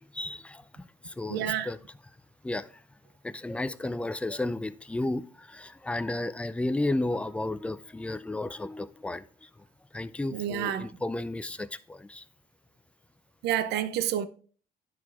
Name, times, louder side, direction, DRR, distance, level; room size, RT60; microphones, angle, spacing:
voice 1, 0.0-1.8 2.4-2.8 3.2-9.5 9.9-12.2, left 2 dB, 5° left, 0.4 m, -33 dB
voice 2, 1.3-1.7 10.3-11.0 13.4-14.3, right 10 dB, 80° right, 0.7 m, -29 dB
10.5 x 4.8 x 3.5 m
cardioid pair, 110°, 17 cm